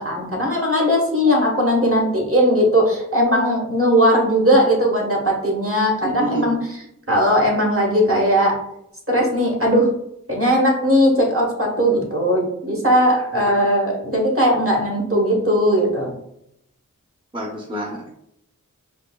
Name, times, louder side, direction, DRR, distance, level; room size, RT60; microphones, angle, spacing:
voice 1, 0.0-6.8 7.1-8.5 9.1-9.9 10.3-16.1, equal, 45° right, -2 dB, 1.2 m, -18 dB
voice 2, 17.3-18.1, right 1 dB, 15° right, -2 dB, 0.6 m, -27 dB
5.1 x 2.2 x 2.3 m, 0.78 s
wide cardioid pair, 45°, 32 cm